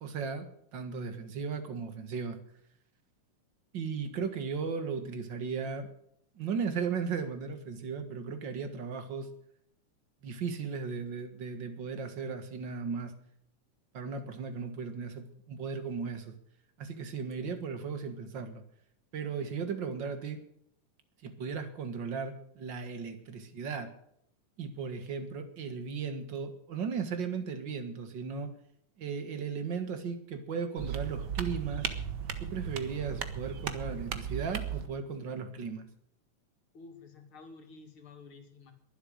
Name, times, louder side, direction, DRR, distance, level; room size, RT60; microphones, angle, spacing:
voice 1, 0.0-2.4 3.7-5.9 6.4-9.3 10.2-13.1 13.9-16.3 16.8-18.6 19.1-20.4 21.2-23.9 24.6-28.5 29.0-31.9 32.4-35.9, right 5 dB, 40° right, 8 dB, 2.0 m, -36 dB
sound 1, 30.8-34.9, right 8 dB, 60° right, 1.1 m, -36 dB
voice 2, 36.7-38.7, left 4 dB, 45° left, 4 dB, 3.0 m, -51 dB
22.0 x 7.9 x 6.5 m, 0.71 s
omnidirectional pair, 3.6 m